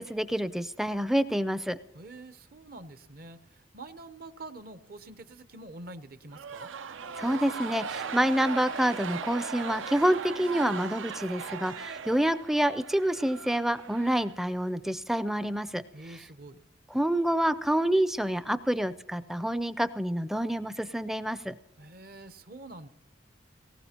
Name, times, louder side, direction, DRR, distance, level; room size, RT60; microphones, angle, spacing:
voice 1, 0.0-1.8 7.2-15.8 16.9-21.5, right 1 dB, ahead, 13 dB, 0.4 m, -27 dB
voice 2, 1.9-6.7 15.9-16.6 21.8-22.9, right 2 dB, 50° right, 12 dB, 0.7 m, -46 dB
sound 1, 6.3-14.7, right 6 dB, 90° right, 0.6 m, -38 dB
19.5 x 18.0 x 2.9 m, 0.97 s
head